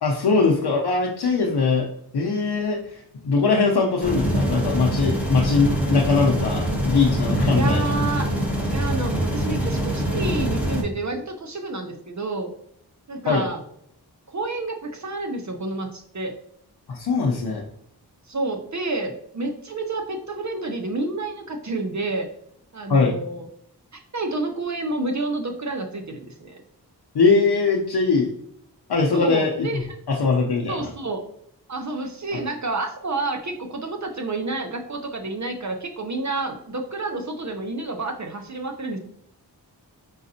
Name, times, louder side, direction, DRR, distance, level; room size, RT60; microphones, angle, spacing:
voice 1, 0.0-1.9 2.1-7.9 13.3-13.5 16.9-17.6 22.9-23.2 27.1-28.3 28.9-29.8 30.1-30.9, left 4 dB, 75° left, -1 dB, 0.7 m, -21 dB
sound 1, 4.0-10.8, equal, 5° right, 1.3 m, -24 dB
voice 2, 7.5-8.3 8.7-12.5 13.1-13.6 14.3-16.3 18.3-22.3 22.7-23.5 23.9-26.6 29.1-29.9 30.7-31.2 31.7-39.0, right 2 dB, 45° right, 5 dB, 0.6 m, -29 dB
5.0 x 4.0 x 2.7 m, 0.72 s
wide cardioid pair, 70°, 40 cm